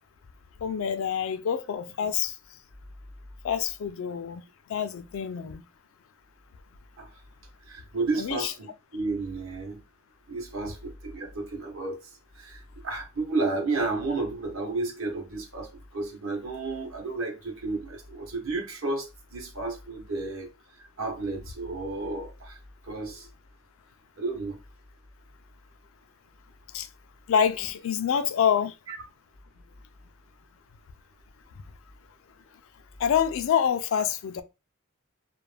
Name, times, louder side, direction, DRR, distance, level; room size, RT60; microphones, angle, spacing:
voice 1, 0.6-2.4 3.4-4.4 4.7-5.6 8.2-8.5 26.7-26.9 27.3-28.7 33.0-34.4, left 8 dB, 65° left, 0.3 m, -26 dB
voice 2, 7.7-9.8 10.3-12.0 12.4-20.5 21.0-22.6 22.8-23.3 24.2-24.6 28.9-29.0, right 3 dB, 70° right, 0.8 m, -32 dB
2.4 x 2.1 x 3.1 m
head